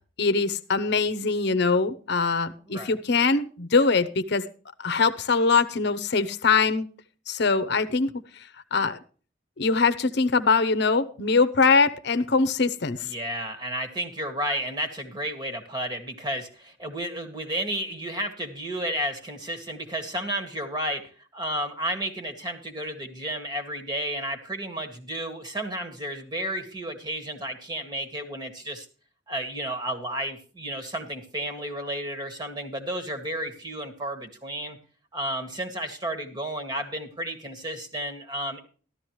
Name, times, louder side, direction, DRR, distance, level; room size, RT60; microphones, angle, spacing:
voice 1, 0.2-4.5 4.8-6.9 7.3-8.1 8.7-9.0 9.6-13.1, left 4 dB, 60° left, 12 dB, 0.8 m, -22 dB
voice 2, 13.0-28.9 29.3-34.8 35.1-38.6, right 1 dB, 25° right, 6 dB, 1.8 m, -32 dB
13.5 x 12.5 x 3.1 m, 0.39 s
head